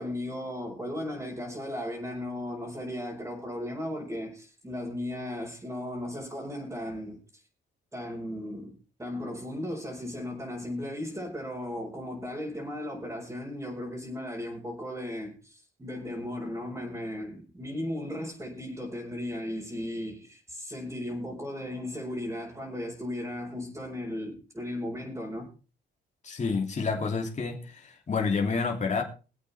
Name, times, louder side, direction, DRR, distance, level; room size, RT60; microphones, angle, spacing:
voice 1, 0.0-7.4 7.9-25.5, left 1 dB, 15° right, 4.8 m, -36 dB
voice 2, 26.2-29.0, left 4 dB, 35° left, 3.0 m, -29 dB
23.0 x 8.5 x 3.5 m
cardioid pair, 90°, 20 cm